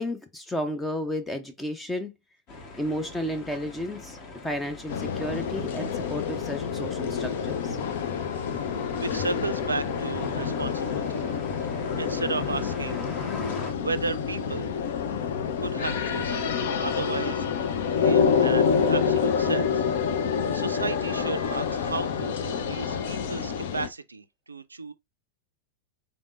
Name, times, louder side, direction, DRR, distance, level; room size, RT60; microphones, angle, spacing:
voice 1, 0.0-2.1 2.8-4.2 4.4-7.8, left 1 dB, 10° left, 0.5 m, -32 dB
sound 1, 2.5-13.7, left 3 dB, 35° left, 1.2 m, -42 dB
sound 2, 4.9-23.9, left 6 dB, 55° left, 0.6 m, -27 dB
voice 2, 9.0-11.2 12.0-13.0 13.8-14.7 15.6-16.5 16.8-17.5 18.0-20.2 20.5-24.9, right 4 dB, 80° right, 0.4 m, -34 dB
3.8 x 3.5 x 2.4 m
figure-of-eight pair, 90°, 0 cm